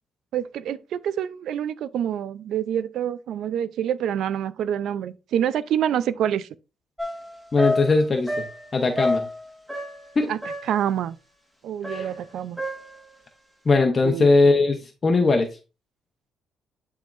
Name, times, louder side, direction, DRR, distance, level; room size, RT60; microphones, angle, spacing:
voice 1, 0.3-6.5 10.3-10.4 10.7-11.2 11.6-12.6 14.0-14.3, right 10 dB, 75° right, 0.4 m, -26 dB
sound 1, 7.0-10.1 10.4-10.9 11.8-13.1, left 1 dB, 5° right, 1.5 m, -29 dB
voice 2, 7.5-8.5 8.7-9.3 10.2-10.3 11.9-12.1 13.6-15.5, left 3 dB, 35° left, 0.9 m, -20 dB
10.5 x 3.6 x 2.5 m
cardioid pair, 90°, 0 cm